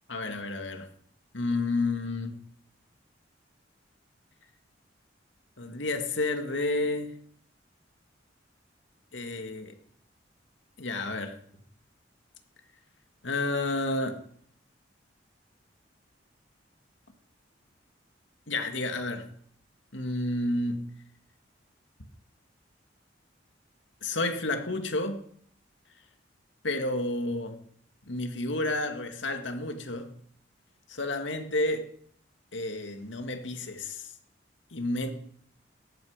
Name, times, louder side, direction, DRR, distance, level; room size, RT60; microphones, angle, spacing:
voice 1, 0.1-0.9 1.3-2.3 5.6-7.1 9.1-9.7 10.8-11.3 13.2-14.2 18.5-19.3 19.9-20.9 24.0-25.2 26.6-27.6 28.1-30.1 30.9-31.9 32.5-34.1 34.7-35.1, left 2 dB, 85° left, 6 dB, 2.2 m, -30 dB
18.0 x 14.0 x 5.1 m, 0.62 s
head